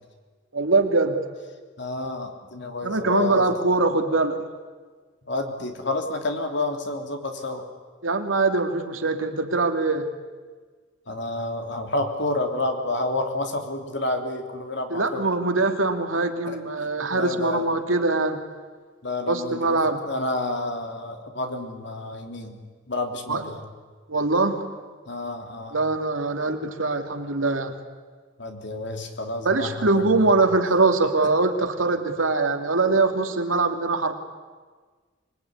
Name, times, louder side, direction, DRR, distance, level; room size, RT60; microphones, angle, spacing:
voice 1, 0.5-1.2 2.8-4.4 8.0-10.1 14.9-18.4 19.3-20.0 23.3-23.4 24.1-24.6 25.7-27.7 29.4-34.2, right 3 dB, 85° right, 5 dB, 2.6 m, -22 dB
voice 2, 1.8-3.5 5.3-7.6 11.1-15.2 16.5-16.6 17.1-17.7 19.0-19.8 20.0-22.6 22.9-23.6 25.1-25.8 28.4-30.3, left 2 dB, 60° left, 4 dB, 3.3 m, -29 dB
25.5 x 21.0 x 9.8 m, 1.5 s
head